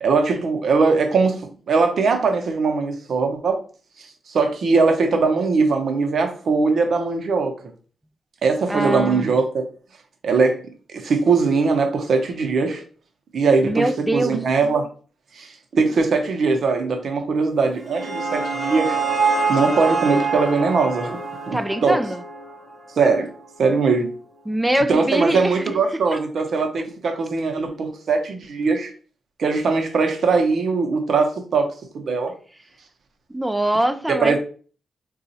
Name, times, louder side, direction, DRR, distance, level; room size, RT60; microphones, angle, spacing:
voice 1, 0.0-3.6 4.3-7.6 8.4-9.6 10.2-10.6 10.9-12.8 13.3-14.9 15.3-19.0 19.5-21.2 21.5-22.0 23.0-23.3 23.6-24.1 24.9-28.9 29.4-32.3 34.1-34.4, right 4 dB, 65° right, 0.7 m, -20 dB
voice 2, 8.7-9.3 13.6-14.4 21.5-22.2 24.5-25.7 26.1-26.2 33.3-34.4, right 1 dB, 10° right, 0.3 m, -23 dB
sound 1, 17.6-22.7, right 4 dB, 35° right, 0.9 m, -25 dB
3.8 x 2.3 x 2.7 m
cardioid pair, 95°, 0 cm